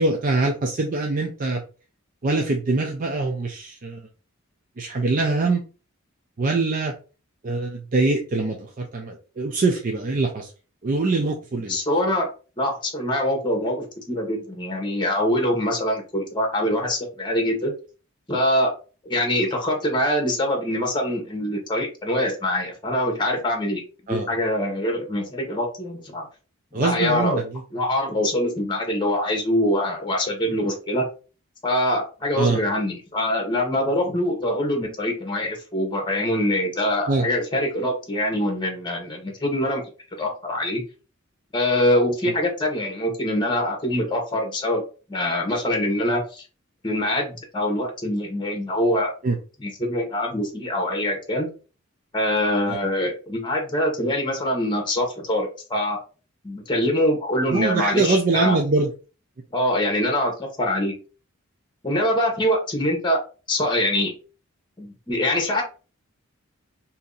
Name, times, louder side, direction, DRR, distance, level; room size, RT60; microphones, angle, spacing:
voice 1, 0.0-1.6 2.2-4.0 4.8-5.6 6.4-6.9 7.4-10.5 10.8-11.8 24.1-24.3 26.7-27.6 32.3-32.6 37.1-37.3 49.2-49.4 52.7-52.8 57.5-58.9, right 3 dB, 40° right, 2 dB, 0.4 m, -23 dB
voice 2, 11.7-12.3 12.6-17.7 18.3-18.7 19.0-23.8 24.1-26.2 26.8-27.4 27.7-31.0 31.6-39.8 40.2-40.8 41.5-44.8 45.1-46.4 46.8-49.1 49.6-51.5 52.1-56.0 56.4-58.6 59.5-60.3 60.6-60.9 61.8-63.2 63.5-64.1 64.8-65.6, left 1 dB, 20° left, 2 dB, 1.0 m, -24 dB
2.8 x 2.6 x 3.8 m, 0.35 s
head